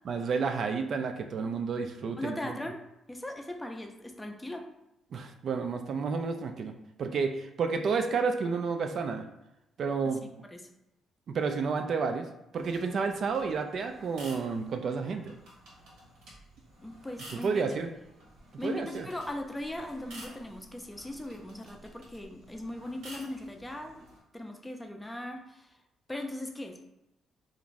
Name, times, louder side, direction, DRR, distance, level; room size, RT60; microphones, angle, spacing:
voice 1, 0.1-2.6 5.1-6.7 7.0-9.2 9.8-10.2 11.3-12.3 12.5-15.3 17.4-17.9 18.6-19.1, right 5 dB, 60° right, 6 dB, 0.3 m, -30 dB
voice 2, 2.2-2.8 3.1-4.7 10.0-10.1 10.5-10.6 16.8-17.8 18.6-24.0 24.3-25.8 26.1-26.8, left 1 dB, 10° left, 3 dB, 0.4 m, -39 dB
sound 1, 12.6-24.2, right 1 dB, 90° right, 1.1 m, -52 dB
2.5 x 2.5 x 3.1 m, 0.88 s
cardioid pair, 90°, 0 cm